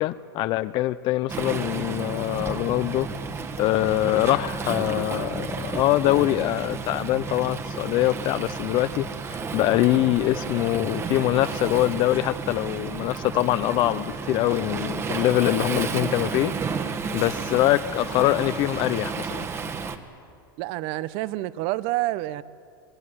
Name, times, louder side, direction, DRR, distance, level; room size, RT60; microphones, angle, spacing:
voice 1, 0.0-3.1 3.6-16.5 17.1-19.4, left 16 dB, 45° left, 13 dB, 0.6 m, -24 dB
Waves surf, 1.3-20.0, right 5 dB, 25° right, 1.5 m, -32 dB
voice 2, 20.6-22.4, right 17 dB, 55° right, 17 dB, 0.9 m, -28 dB
25.0 x 18.0 x 9.8 m, 2.3 s
supercardioid pair, 130°, 11 cm